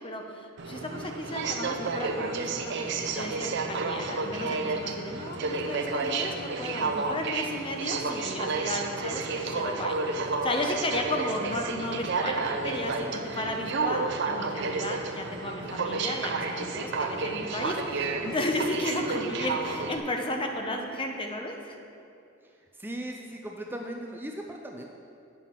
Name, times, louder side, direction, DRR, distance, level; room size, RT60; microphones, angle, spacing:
voice 1, 0.0-21.8, left 1 dB, 25° left, 3 dB, 0.8 m, -34 dB
Aircraft, 0.6-20.0, right 3 dB, 60° right, 0.6 m, -31 dB
voice 2, 22.8-24.9, right 1 dB, 10° right, 1 dB, 0.4 m, -37 dB
9.0 x 5.7 x 5.8 m, 2.5 s
head